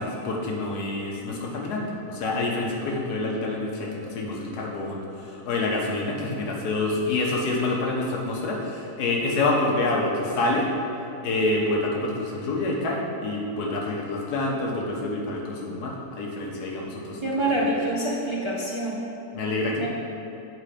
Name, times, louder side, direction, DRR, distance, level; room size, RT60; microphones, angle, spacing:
voice 1, 0.0-10.7 11.2-17.5 19.3-19.9, left 2 dB, 85° left, -1 dB, 1.6 m, -27 dB
voice 2, 17.2-19.0 19.8-19.9, right 1 dB, 40° right, -5 dB, 0.4 m, -26 dB
8.0 x 4.2 x 5.0 m, 2.8 s
omnidirectional pair, 1.7 m